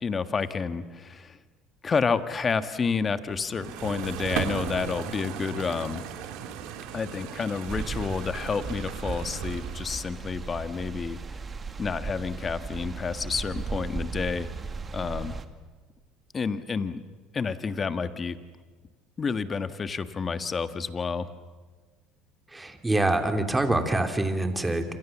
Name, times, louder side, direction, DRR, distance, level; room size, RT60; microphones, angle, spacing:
voice 1, 0.0-1.4 1.8-6.0 6.9-11.2 11.8-14.5 14.9-15.3 16.3-17.0 17.3-18.4 19.2-21.3, left 5 dB, 30° left, 11 dB, 1.6 m, -29 dB
sound 1, 3.3-10.3, right 9 dB, 70° right, 2.9 m, -37 dB
sound 2, 7.7-15.5, right 4 dB, 30° right, 1.9 m, -36 dB
voice 2, 22.5-24.8, right 2 dB, 10° right, 6 dB, 3.1 m, -25 dB
27.5 x 26.5 x 7.3 m, 1.4 s
supercardioid pair, 95°, 0 cm